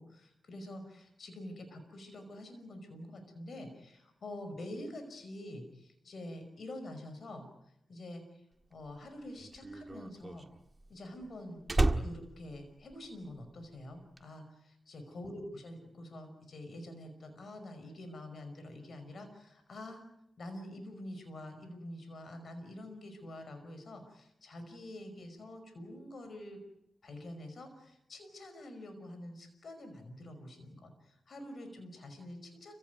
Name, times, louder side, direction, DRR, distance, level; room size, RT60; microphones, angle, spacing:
voice 1, 0.0-8.5 8.7-10.5 10.9-20.0 20.4-26.6 27.0-32.8, left 1 dB, 65° left, 7 dB, 5.5 m, -47 dB
Slam, 8.7-13.5 13.8-14.2, right 2 dB, 25° right, 1.6 m, -33 dB
29.0 x 16.5 x 9.4 m, 0.82 s
cardioid pair, 60°, 0 cm